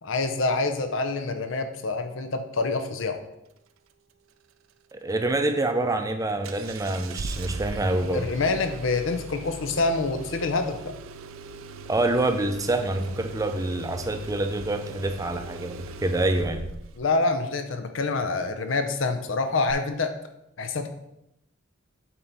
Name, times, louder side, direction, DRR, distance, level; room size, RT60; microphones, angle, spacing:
voice 1, 0.0-3.2 8.1-10.9 17.0-20.1 20.6-20.9, left 3 dB, 70° left, 8 dB, 0.7 m, -26 dB
voice 2, 4.9-8.3 11.9-16.6, right 2 dB, 15° right, 7 dB, 0.6 m, -26 dB
Engine starting, 6.4-17.0 19.7-19.8, right 3 dB, 85° right, 0.5 m, -40 dB
7.8 x 4.5 x 4.0 m, 0.83 s
head